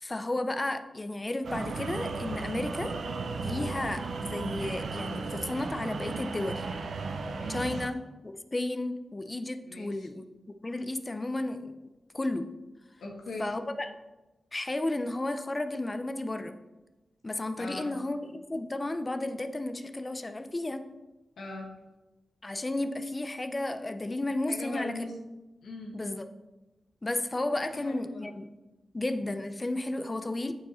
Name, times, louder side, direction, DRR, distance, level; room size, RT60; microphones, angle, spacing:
voice 1, 0.0-2.9 3.4-6.7 7.5-10.2 10.6-12.5 13.4-13.9 14.5-16.6 17.2-20.9 22.4-24.9 25.9-26.2 27.0-28.5 28.9-30.5, left 2 dB, 25° left, 9 dB, 0.5 m, -33 dB
sound 1, 1.4-7.9, right 4 dB, 70° right, 0.6 m, -35 dB
voice 2, 7.3-7.9 9.6-10.1 13.0-13.5 17.6-17.9 21.4-21.7 24.5-25.2 25.6-26.0 27.7-28.3, left 2 dB, 90° left, -1 dB, 1.4 m, -40 dB
8.4 x 4.7 x 4.3 m, 1.1 s
wide cardioid pair, 100°, 0 cm